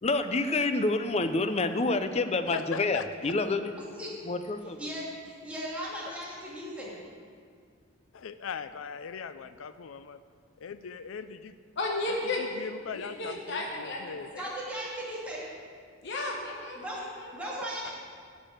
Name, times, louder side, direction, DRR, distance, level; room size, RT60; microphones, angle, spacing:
voice 1, 0.0-3.9 4.2-4.9 6.1-6.2, left 3 dB, 30° left, 9 dB, 0.5 m, -28 dB
voice 2, 2.5-3.1 8.1-10.2 10.6-11.6 12.0-14.3 17.8-17.9, left 6 dB, 90° left, 12 dB, 0.4 m, -39 dB
voice 3, 4.8-7.0 14.4-15.4 16.7-17.0 17.3-17.9, equal, 5° right, -7 dB, 2.6 m, -37 dB
voice 4, 11.8-12.4 12.9-14.4 16.0-17.3, left 2 dB, 60° left, 0 dB, 1.1 m, -34 dB
11.0 x 5.4 x 8.5 m, 2.1 s
head